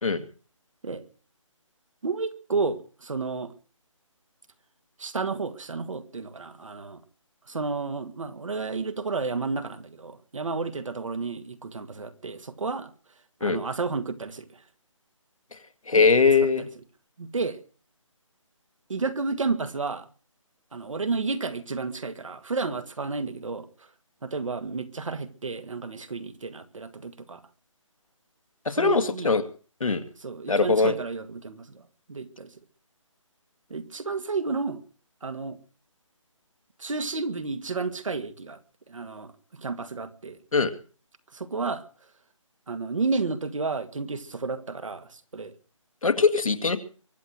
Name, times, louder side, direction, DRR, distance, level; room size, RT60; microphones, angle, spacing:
voice 1, 2.0-3.5 5.0-7.0 7.5-12.9 13.4-14.5 15.9-16.1 16.6-16.7 17.2-17.6 18.9-20.0 20.7-23.7 24.2-27.4 28.7-29.3 30.2-31.8 32.1-32.5 33.7-34.8 35.2-35.6 36.8-38.6 38.9-40.4 41.3-41.8 42.7-45.5, right 4 dB, 70° right, 1.9 m, -31 dB
voice 2, 15.9-16.7 28.7-29.4 29.8-30.0 30.5-30.9 40.5-40.7 46.0-46.8, left 4 dB, 85° left, 2.1 m, -21 dB
23.5 x 8.0 x 6.1 m
hypercardioid pair, 170°, 17 cm